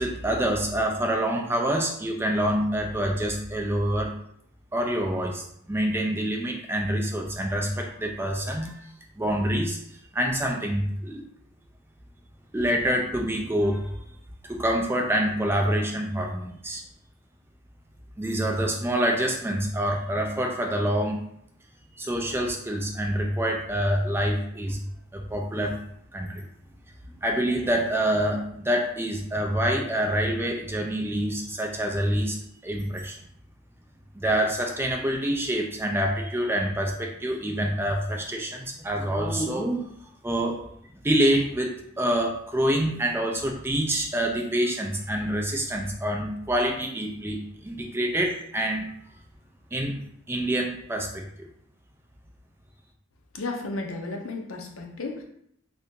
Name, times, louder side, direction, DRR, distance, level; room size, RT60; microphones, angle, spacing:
voice 1, 0.0-4.1 4.7-8.9 9.2-11.2 12.5-13.9 14.5-16.8 18.2-21.2 22.0-24.8 25.1-25.8 26.1-26.4 27.2-32.4 32.6-33.2 34.1-39.9 40.2-40.6 41.0-48.9 49.7-51.5, right 1 dB, 10° right, 2 dB, 0.3 m, -26 dB
voice 2, 53.3-55.2, left 3 dB, 75° left, 2 dB, 0.6 m, -33 dB
2.7 x 2.7 x 3.5 m, 0.71 s
head